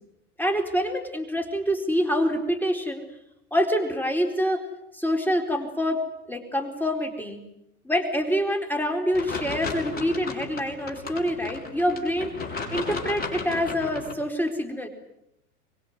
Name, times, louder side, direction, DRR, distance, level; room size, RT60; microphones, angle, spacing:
voice 1, 0.4-3.0 3.5-4.7 4.9-7.4 7.8-12.3 12.7-14.9, equal, 5° left, 4 dB, 4.3 m, -26 dB
sound 1, 9.1-14.1, left 4 dB, 20° left, 6.2 m, -34 dB
26.0 x 22.0 x 9.6 m, 0.82 s
hypercardioid pair, 110°, 45 cm